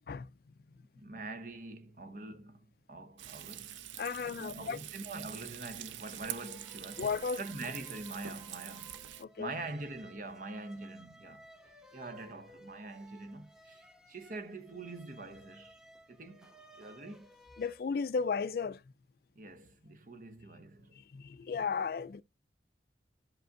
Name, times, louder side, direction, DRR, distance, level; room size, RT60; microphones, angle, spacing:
voice 1, 0.9-7.1 7.4-9.0 9.4-15.8 16.1-17.3 19.4-21.0, right 2 dB, 45° right, 0.8 m, -45 dB
Frying (food), 3.2-9.2, right 11 dB, 80° right, 0.4 m, -45 dB
voice 2, 4.0-4.8 7.0-7.4 9.2-9.5 17.6-18.8 20.9-22.2, left 5 dB, 55° left, 0.3 m, -34 dB
sound 1, 6.2-17.8, equal, 5° right, 0.7 m, -58 dB
11.5 x 5.2 x 2.5 m
head